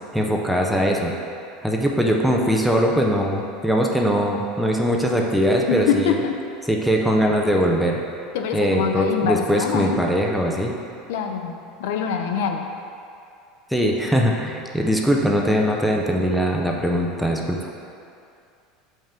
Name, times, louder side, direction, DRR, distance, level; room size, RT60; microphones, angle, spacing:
voice 1, 0.1-1.1 1.6-6.2 6.7-8.0 8.5-10.7 13.7-17.7, equal, ahead, -1 dB, 0.4 m, -21 dB
voice 2, 5.7-6.4 8.3-10.1 11.1-12.7, left 7 dB, 75° left, 5 dB, 0.6 m, -24 dB
7.1 x 5.4 x 3.7 m, 2.5 s
cardioid pair, 175°, 0 cm